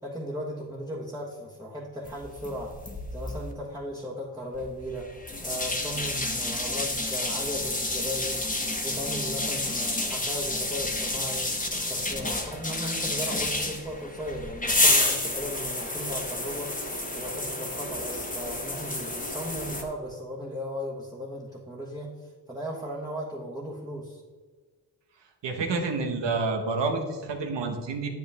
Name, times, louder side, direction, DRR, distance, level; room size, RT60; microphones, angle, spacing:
voice 1, 0.0-2.7 3.1-5.1 5.4-11.4 11.8-16.7 17.1-24.2, equal, 5° right, -4 dB, 1.4 m, -36 dB
sound 1, 2.0-3.5 4.5-19.8, left 2 dB, 20° left, 1.3 m, -30 dB
voice 2, 25.4-28.1, right 3 dB, 80° right, 4 dB, 1.4 m, -28 dB
8.9 x 8.2 x 3.6 m, 1.4 s
cardioid pair, 80°, 42 cm